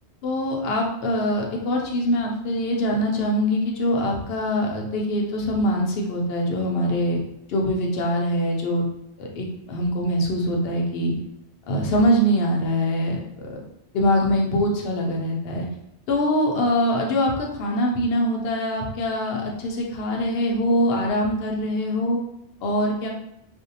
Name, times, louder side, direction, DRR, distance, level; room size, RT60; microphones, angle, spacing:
voice 1, 0.2-7.2 7.5-8.9 9.2-11.1 11.7-13.6 13.9-15.7 16.1-22.2 22.6-23.1, equal, 70° left, 0 dB, 0.8 m, -23 dB
2.5 x 2.1 x 2.7 m, 0.80 s
omnidirectional pair, 1.1 m